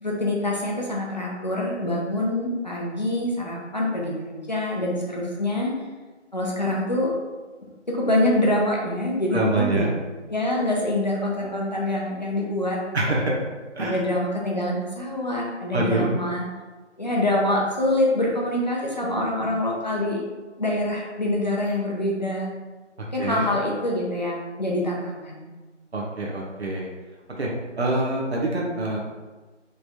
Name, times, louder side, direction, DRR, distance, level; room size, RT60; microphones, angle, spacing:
voice 1, 0.0-5.7 6.3-7.1 7.9-9.9 10.3-12.8 13.0-13.2 13.8-16.4 17.0-20.2 20.6-22.5 23.1-25.5, left 1 dB, 35° left, -3 dB, 0.7 m, -25 dB
voice 2, 9.3-9.9 12.9-13.4 13.7-14.0 15.7-16.1 23.2-23.5 25.9-26.9 27.4-27.5 27.8-29.0, right 2 dB, 60° right, -3 dB, 1.0 m, -25 dB
4.0 x 3.3 x 2.7 m, 1.3 s
figure-of-eight pair, 165°, 37 cm